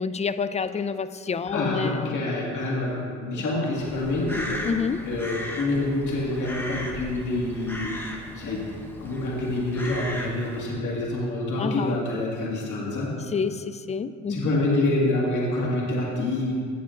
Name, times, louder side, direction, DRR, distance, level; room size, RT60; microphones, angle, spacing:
voice 1, 0.0-2.2 4.6-5.0 11.6-12.0 13.3-14.5, left 5 dB, 25° left, 13 dB, 0.3 m, -28 dB
voice 2, 1.5-4.6 5.1-8.0 8.3-8.7 9.0-13.1 14.3-16.5, left 2 dB, 75° left, -4 dB, 1.9 m, -27 dB
Crow, 3.8-10.6, equal, 5° left, 1.1 m, -36 dB
16.0 x 7.1 x 2.5 m, 2.1 s
cardioid pair, 90°, 30 cm